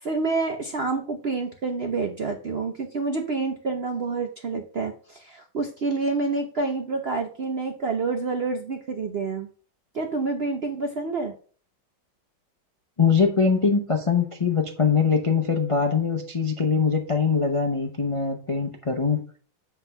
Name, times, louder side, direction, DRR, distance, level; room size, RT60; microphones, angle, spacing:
voice 1, 0.0-9.5 9.9-11.3, right 3 dB, 60° right, 4 dB, 0.6 m, -28 dB
voice 2, 13.0-19.2, left 5 dB, 60° left, 2 dB, 0.3 m, -22 dB
7.9 x 3.6 x 5.6 m, 0.42 s
omnidirectional pair, 2.0 m